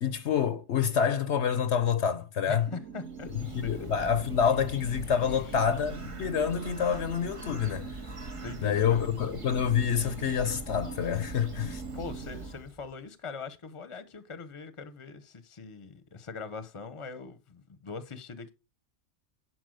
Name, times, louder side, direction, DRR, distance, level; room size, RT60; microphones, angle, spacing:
voice 1, 0.0-2.7 3.5-8.0 8.6-11.8, left 7 dB, 65° left, 1.0 m, -27 dB
voice 2, 2.5-3.7 5.3-5.4 8.4-9.0 11.9-18.5, left 4 dB, 25° left, 0.9 m, -42 dB
sound 1, 2.7-12.5, right 7 dB, 90° right, 1.2 m, -44 dB
Bird, 2.9-12.9, right 1 dB, 30° right, 0.9 m, -43 dB
11.0 x 4.3 x 6.4 m
omnidirectional pair, 1.3 m